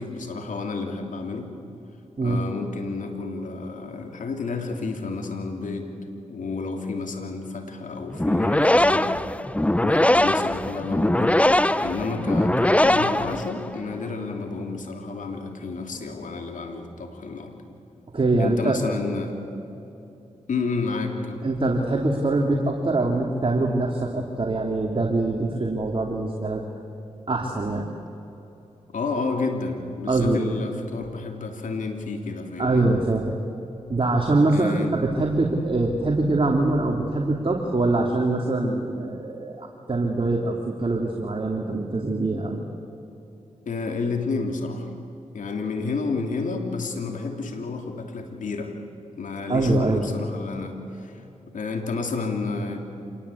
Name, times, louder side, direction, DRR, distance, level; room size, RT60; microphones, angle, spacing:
voice 1, 0.0-1.5 2.2-6.0 6.3-9.1 9.8-17.5 18.4-19.4 20.5-21.4 28.9-32.9 34.5-34.9 43.7-44.9 45.3-48.7 49.2-52.8, left 4 dB, 75° left, 4 dB, 3.1 m, -30 dB
sound 1, 8.1-13.8, left 1 dB, 10° left, 0.8 m, -21 dB
voice 2, 18.1-18.7 21.4-26.6 27.3-27.9 30.1-30.6 32.6-33.3 33.9-42.6 49.5-50.1, right 2 dB, 40° right, 1 dB, 2.9 m, -23 dB
26.5 x 20.5 x 8.6 m, 2.9 s
cardioid pair, 45°, 13 cm